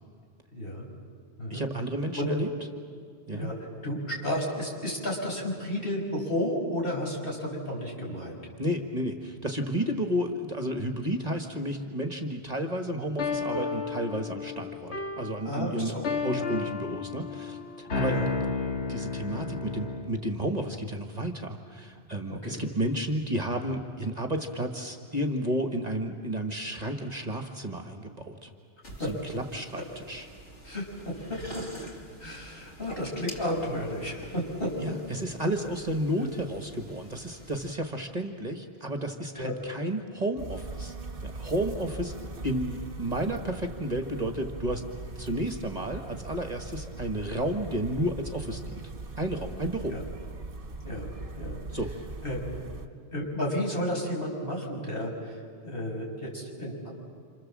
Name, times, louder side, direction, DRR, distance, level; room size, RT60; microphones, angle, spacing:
voice 1, 0.5-0.9 1.4-1.6 2.1-2.3 3.3-3.6 3.8-8.4 15.4-16.0 16.3-16.5 18.0-18.3 22.3-22.6 29.0-29.1 29.8-29.9 30.6-31.6 32.2-34.9 36.2-36.3 39.3-39.5 49.9-50.0 50.8-51.6 52.2-52.4 53.1-56.9, left 1 dB, 50° left, -2 dB, 6.3 m, -32 dB
voice 2, 1.5-2.5 3.3-3.5 8.6-15.9 16.2-18.2 18.9-28.5 29.1-30.3 34.8-40.9 41.2-42.1 42.4-44.8 45.1-50.0 51.7-51.9, right 1 dB, 35° right, 4 dB, 1.6 m, -32 dB
sound 1, 13.2-20.1, left 4 dB, 70° left, 1.9 m, -32 dB
sound 2, 28.8-37.7, right 1 dB, 90° left, 2.9 m, -47 dB
sound 3, 40.4-52.9, right 3 dB, 50° right, 1.7 m, -40 dB
29.0 x 27.0 x 7.5 m, 2.1 s
omnidirectional pair, 1.2 m